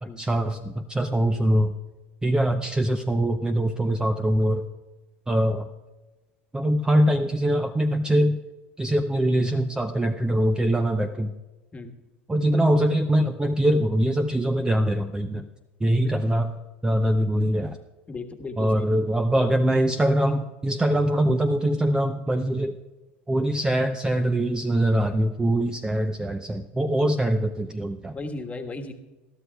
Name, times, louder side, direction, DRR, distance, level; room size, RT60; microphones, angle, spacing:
voice 1, 0.0-1.7 2.2-4.6 5.3-5.7 6.5-8.4 8.8-11.3 12.3-15.5 15.8-16.5 16.8-17.8 18.6-22.8 23.3-28.2, right 1 dB, 10° right, 7 dB, 0.6 m, -23 dB
voice 2, 18.1-18.9 28.1-28.9, left 3 dB, 20° left, 4 dB, 1.4 m, -36 dB
21.0 x 12.5 x 2.3 m, 1.2 s
hypercardioid pair, 90°, 6 cm